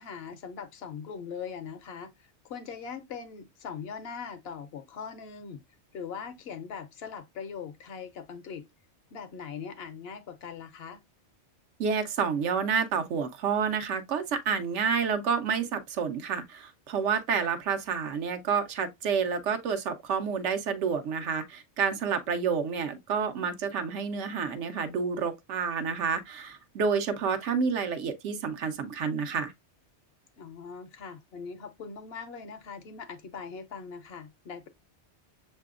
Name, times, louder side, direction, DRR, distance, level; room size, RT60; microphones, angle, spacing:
voice 1, 0.0-5.6 5.9-8.6 9.1-11.0 22.3-22.6 30.4-34.7, left 6 dB, 65° left, 0.8 m, -41 dB
voice 2, 11.8-29.5, right 6 dB, 85° right, 1.0 m, -29 dB
6.6 x 2.7 x 2.4 m
omnidirectional pair, 1.2 m